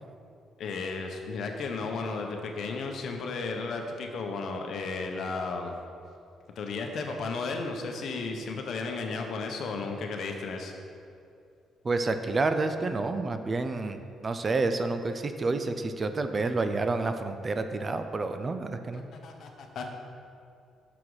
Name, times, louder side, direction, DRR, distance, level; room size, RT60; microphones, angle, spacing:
voice 1, 0.6-5.7 6.6-10.7 18.9-19.9, left 4 dB, 65° left, 3 dB, 0.8 m, -34 dB
voice 2, 11.8-19.0, right 3 dB, 35° right, 8 dB, 0.4 m, -29 dB
6.0 x 5.9 x 4.8 m, 2.5 s
cardioid pair, 90°, 0 cm